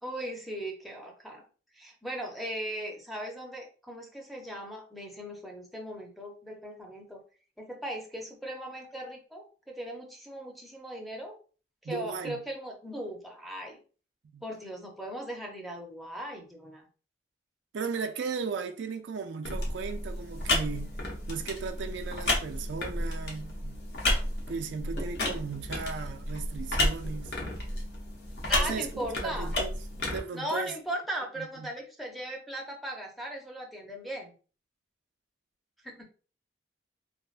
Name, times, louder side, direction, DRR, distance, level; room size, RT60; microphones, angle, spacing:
voice 1, 0.0-1.4 1.7-7.2 7.6-11.4 11.8-13.8 14.4-16.9 28.5-29.5 30.3-34.3 35.8-36.0, right 1 dB, ahead, 0.5 m, -38 dB
voice 2, 11.8-12.4 14.3-14.4 17.7-20.9 21.3-23.8 24.5-27.3 28.5-28.9 29.2-29.8 30.1-30.7 31.4-31.7, right 5 dB, 80° right, 0.4 m, -36 dB
sound 1, 19.4-30.2, left 1 dB, 60° left, 0.8 m, -32 dB
sound 2, 25.0-25.5 26.9-27.2 28.7-29.2 29.6-29.7 30.8-31.0, right 2 dB, 85° left, 1.2 m, -44 dB
3.2 x 2.1 x 2.4 m
head